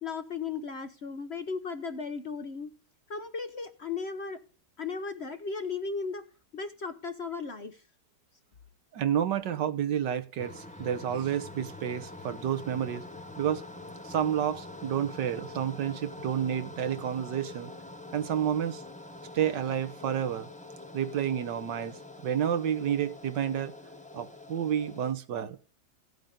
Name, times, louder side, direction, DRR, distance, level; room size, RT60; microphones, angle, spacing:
voice 1, 0.0-2.7 3.1-4.4 4.8-6.2 6.5-7.8, left 5 dB, 45° left, 0.9 m, -36 dB
voice 2, 8.9-13.0 13.4-13.6 14.0-17.7 18.1-18.8 19.3-20.5 20.9-23.7 24.1-25.6, right 9 dB, 75° right, 1.6 m, -30 dB
sound 1, 10.4-25.1, left 2 dB, 10° left, 0.4 m, -45 dB
16.0 x 9.0 x 3.8 m
omnidirectional pair, 1.9 m